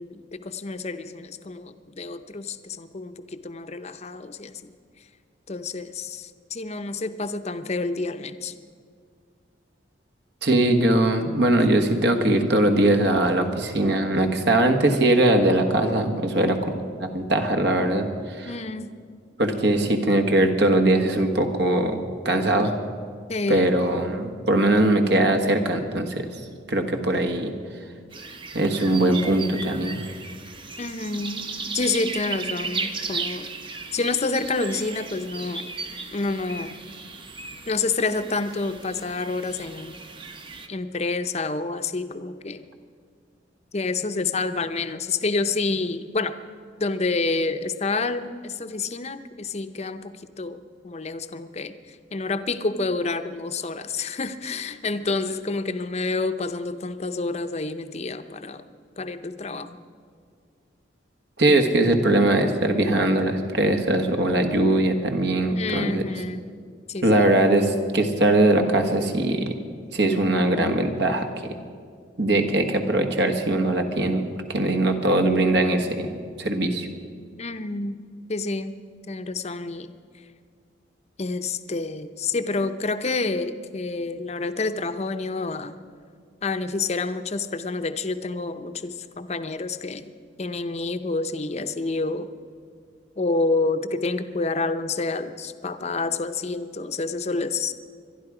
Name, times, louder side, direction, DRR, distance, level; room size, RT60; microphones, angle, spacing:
voice 1, 0.0-4.7 5.5-8.5 18.4-18.9 23.3-23.8 30.8-31.5 31.7-33.5 33.9-35.7 36.1-36.7 37.7-39.9 40.7-42.6 43.7-46.3 46.8-58.6 59.0-59.8 65.5-66.4 66.9-67.4 77.4-78.0 78.3-78.8 79.1-79.9 81.2-85.7 86.4-90.1 90.4-92.3 93.2-97.7, left 3 dB, 35° left, 10 dB, 0.6 m, -28 dB
voice 2, 10.4-18.5 19.4-22.0 22.2-22.7 23.5-26.4 26.7-27.5 28.5-30.0 61.4-66.0 67.0-69.5 69.9-71.5 72.2-76.9, right 1 dB, 60° right, 6 dB, 1.4 m, -21 dB
sound 1, 28.1-40.7, right 4 dB, 25° right, 0.8 m, -36 dB
24.0 x 11.5 x 4.9 m, 2.1 s
head